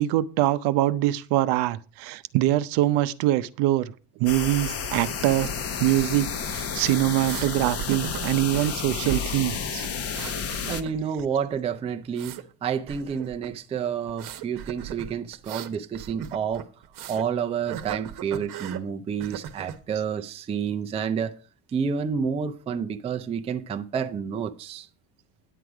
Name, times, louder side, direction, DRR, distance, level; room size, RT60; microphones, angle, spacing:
voice 1, 0.0-3.9 4.2-5.5 5.8-9.9, right 15 dB, 60° right, 0.7 m, -24 dB
sound 1, 4.3-10.8, left 6 dB, 30° left, 0.9 m, -31 dB
sound 2, 7.2-7.5 7.8-8.7 9.0-9.6 9.8-11.2 11.5-12.4 12.9-13.5 14.1-17.3 17.7-18.8 19.2-19.8, right 8 dB, 45° right, 1.0 m, -37 dB
voice 2, 10.7-16.7 17.1-21.4 21.7-24.9, right 7 dB, 15° right, 0.4 m, -29 dB
10.0 x 7.8 x 4.8 m
cardioid pair, 150°, 45 cm